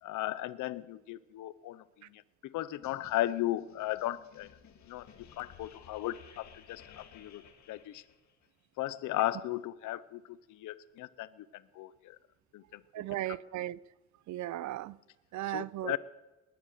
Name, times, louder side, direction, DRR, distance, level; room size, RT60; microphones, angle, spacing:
voice 1, 0.0-4.5 4.9-7.4 7.7-8.0 8.8-12.2 12.5-12.8 15.5-16.0, left 15 dB, 85° left, 0.8 m, -36 dB
sound 1, 2.8-8.5, left 7 dB, 65° left, 1.9 m, -56 dB
voice 2, 12.9-13.8 14.3-15.0 15.3-16.0, right 15 dB, 70° right, 0.5 m, -36 dB
20.0 x 10.5 x 6.7 m
cardioid pair, 90°, 30 cm